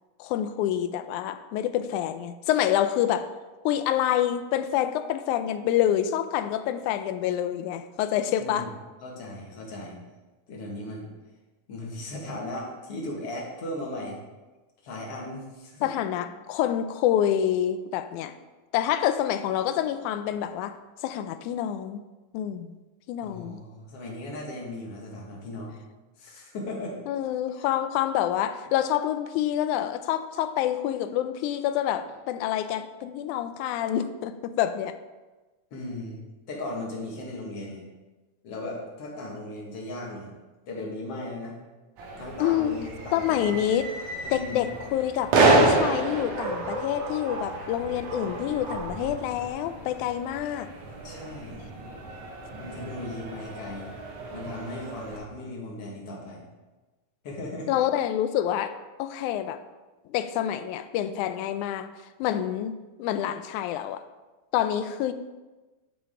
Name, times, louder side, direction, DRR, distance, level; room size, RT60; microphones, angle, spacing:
voice 1, 0.2-3.3 3.7-8.7 15.8-18.3 18.7-20.8 21.0-22.0 22.3-22.8 23.1-23.6 27.1-35.0 42.4-42.7 43.1-43.9 44.3-50.7 57.7-59.6 60.1-61.9 62.2-64.0 64.5-65.1, left 11 dB, 80° left, 10 dB, 1.9 m, -27 dB
voice 2, 8.4-8.7 9.0-10.0 10.5-11.1 11.7-14.2 14.8-15.9 23.2-25.7 26.2-27.0 27.6-27.7 35.7-36.2 36.5-37.8 38.4-40.3 40.7-41.6 42.2-43.5 44.2-44.7 51.0-51.6 52.5-53.9 54.3-56.4 57.2-57.7, left 1 dB, 55° left, -2 dB, 2.5 m, -37 dB
sound 1, 42.0-55.2, right 2 dB, 90° right, 2.9 m, -29 dB
8.9 x 7.1 x 3.7 m, 1.2 s
omnidirectional pair, 3.6 m